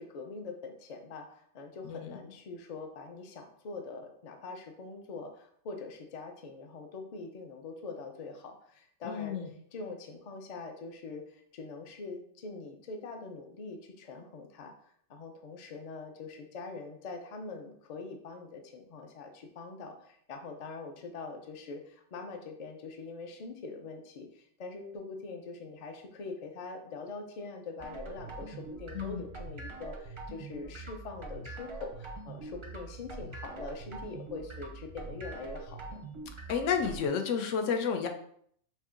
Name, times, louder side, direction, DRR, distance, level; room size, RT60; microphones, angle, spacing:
voice 1, 0.0-14.7 15.1-36.0, left 4 dB, 50° left, 4 dB, 0.4 m, -43 dB
voice 2, 1.8-2.2 9.0-9.5 28.9-29.3 36.5-38.1, left 6 dB, 80° left, 5 dB, 0.9 m, -31 dB
sound 1, 27.8-37.1, right 3 dB, 35° right, 0.5 m, -43 dB
5.4 x 2.7 x 2.5 m, 0.65 s
omnidirectional pair, 1.3 m